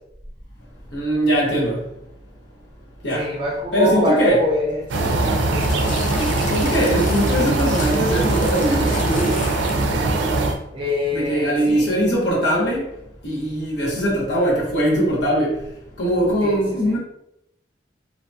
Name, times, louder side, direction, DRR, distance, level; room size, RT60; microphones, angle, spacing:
voice 1, 0.9-1.8 3.0-3.2 3.7-4.4 6.2-9.3 11.1-12.8 13.2-15.5 16.0-17.0, equal, 75° left, -4 dB, 1.0 m, -21 dB
voice 2, 3.1-5.4 10.7-12.0 16.4-16.9, left 1 dB, 30° right, -2 dB, 0.6 m, -25 dB
sound 1, 4.9-10.6, right 2 dB, 85° right, 0.4 m, -21 dB
sound 2, 5.6-10.0 10.8-10.9, left 4 dB, 45° left, 0.4 m, -35 dB
2.8 x 2.2 x 2.6 m, 0.81 s
head